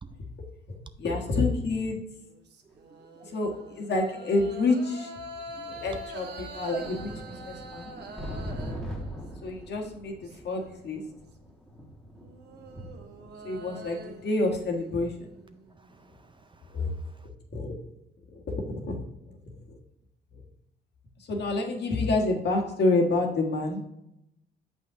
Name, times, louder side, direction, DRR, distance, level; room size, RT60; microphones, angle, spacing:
voice 1, 0.7-2.0 3.2-5.1 5.7-7.9 9.4-11.0 13.4-15.3 16.7-16.9 17.2-17.7 18.3-19.8 20.3-20.4 21.2-23.8, left 2 dB, 60° left, 1.5 m, -29 dB
sound 1, 2.1-9.6 10.0-11.2 12.2-16.1, right 2 dB, 60° right, 1.0 m, -45 dB
voice 2, 2.6-3.4 5.5-5.8 15.7-17.3, right 4 dB, 25° right, 0.5 m, -54 dB
sound 2, 2.7-2.8 3.8-3.9 5.1-5.2 5.5-5.6 6.1-16.2 16.6-16.8, equal, 5° left, 1.3 m, -42 dB
7.0 x 5.5 x 3.6 m
cardioid pair, 90°, 20 cm